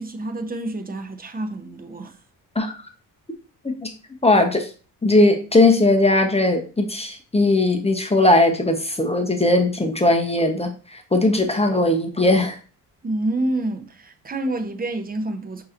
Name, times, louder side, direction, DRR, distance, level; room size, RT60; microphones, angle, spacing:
voice 1, 0.0-2.1 13.0-15.6, right 1 dB, 20° right, 0.7 m, -28 dB
voice 2, 4.2-4.7 5.0-12.6, left 2 dB, 15° left, 0.8 m, -19 dB
5.5 x 2.9 x 2.5 m
supercardioid pair, 60°, 42 cm